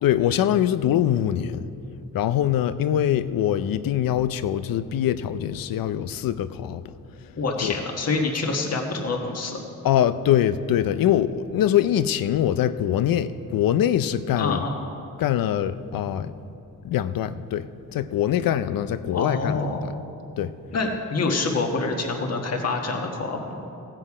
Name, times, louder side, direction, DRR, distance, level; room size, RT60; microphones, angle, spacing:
voice 1, 0.0-1.7 2.1-6.8 7.6-7.7 9.8-14.7 15.2-16.3 16.8-19.9 20.4-20.5, left 10 dB, 85° left, 13 dB, 0.5 m, -23 dB
voice 2, 7.4-9.6 14.3-14.8 19.1-19.9 20.7-23.6, left 3 dB, 50° left, 2 dB, 1.4 m, -26 dB
16.0 x 7.9 x 4.8 m, 2.7 s
cardioid pair, 115°, 33 cm